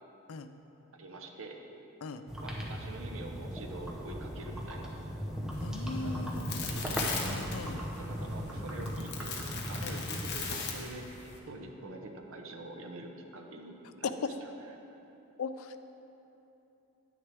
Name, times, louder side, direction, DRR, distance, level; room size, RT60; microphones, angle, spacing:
voice 1, 0.9-1.6 2.4-5.0 6.0-7.1 8.0-14.5 14.9-15.0, right 2 dB, 65° right, 2 dB, 0.9 m, -46 dB
sound 1, 2.3-10.4, equal, 5° right, 0.8 m, -37 dB
sound 2, 5.5-11.4, left 5 dB, 50° left, 1.0 m, -39 dB
voice 2, 5.6-6.6 7.3-7.8 9.8-10.0 14.0-14.1 15.4-15.8, left 4 dB, 75° left, 10 dB, 0.4 m, -38 dB
9.9 x 9.4 x 3.4 m, 3.0 s
head